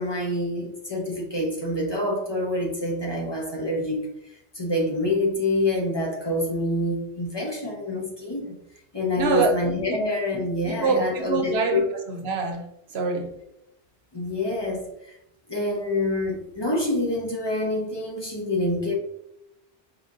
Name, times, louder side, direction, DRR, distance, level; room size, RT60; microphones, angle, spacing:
voice 1, 0.0-4.1 4.5-8.6 8.9-11.8 14.1-15.1 15.5-18.9, left 1 dB, 25° left, -2 dB, 0.8 m, -26 dB
voice 2, 9.2-9.6 9.9-10.0 10.6-13.3, right 4 dB, 80° right, 4 dB, 1.0 m, -25 dB
4.7 x 3.8 x 2.6 m, 0.80 s
omnidirectional pair, 1.1 m